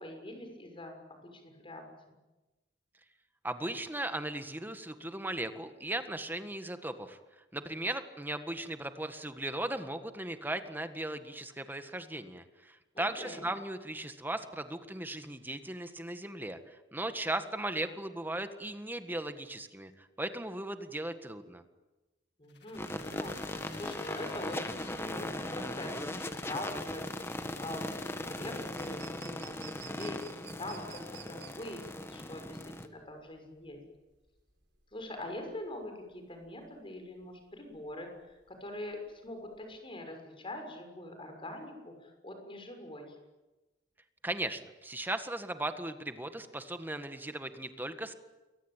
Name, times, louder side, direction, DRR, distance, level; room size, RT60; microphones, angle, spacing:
voice 1, 0.0-1.8 12.9-13.4 22.4-33.8 34.9-43.1, left 1 dB, 30° left, 4 dB, 6.4 m, -44 dB
voice 2, 3.4-21.6 44.2-48.1, right 1 dB, 10° right, 8 dB, 1.7 m, -37 dB
sound 1, 22.5-29.3, left 6 dB, 65° left, 2.2 m, -53 dB
sound 2, 22.7-32.9, left 1 dB, 15° left, 1.7 m, -39 dB
sound 3, 26.1-39.7, right 9 dB, 75° right, 6.3 m, -55 dB
28.5 x 23.0 x 9.1 m, 1.1 s
head